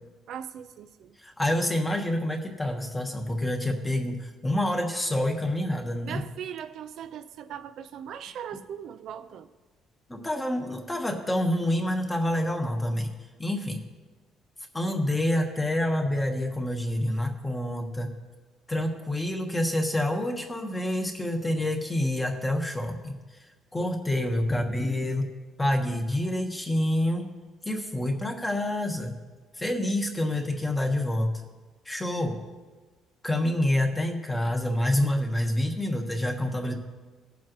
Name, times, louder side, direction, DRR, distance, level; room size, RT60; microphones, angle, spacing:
voice 1, 0.3-1.1 6.0-9.5, right 9 dB, 60° right, 10 dB, 0.5 m, -39 dB
voice 2, 1.2-6.2 10.1-13.1 13.4-13.8 14.7-18.1 18.7-23.1 23.7-25.3 25.6-27.3 27.6-29.1 29.6-31.3 31.8-32.4 33.2-36.7, left 1 dB, 10° left, 3 dB, 1.2 m, -27 dB
19.0 x 7.4 x 3.1 m, 1.3 s
cardioid pair, 150°, 0 cm